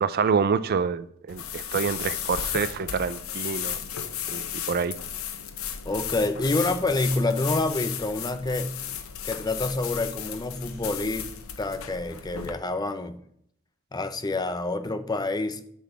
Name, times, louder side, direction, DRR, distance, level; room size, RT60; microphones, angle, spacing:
voice 1, 0.0-3.8 4.3-5.0, right 6 dB, 50° right, 15 dB, 0.4 m, -27 dB
sound 1, 1.3-12.5, left 9 dB, 85° left, 0.9 m, -34 dB
voice 2, 5.8-8.7 9.2-11.3 11.6-13.2 13.9-15.7, left 2 dB, 20° left, 11 dB, 0.6 m, -27 dB
8.2 x 4.0 x 6.6 m, 0.70 s
head